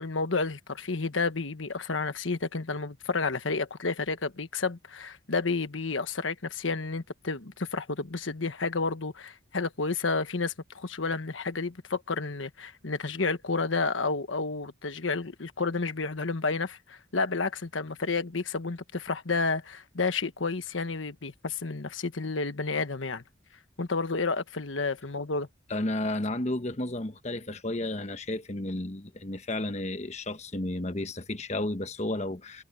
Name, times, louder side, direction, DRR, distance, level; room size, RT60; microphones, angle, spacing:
voice 1, 0.0-23.2 23.8-25.5, left 4 dB, 90° left, 1.3 m, -31 dB
voice 2, 25.7-32.6, left 1 dB, 35° left, 1.2 m, -32 dB
head